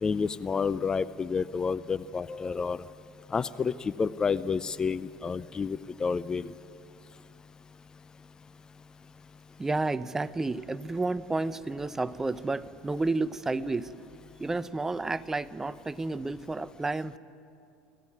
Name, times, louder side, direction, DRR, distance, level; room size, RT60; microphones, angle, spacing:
voice 1, 0.0-2.8 3.3-6.5, left 5 dB, 25° left, 17 dB, 0.5 m, -30 dB
voice 2, 9.6-13.9 14.4-17.2, right 3 dB, 15° right, 15 dB, 0.6 m, -31 dB
26.0 x 15.0 x 9.6 m, 2.6 s
supercardioid pair, 100°, 3 cm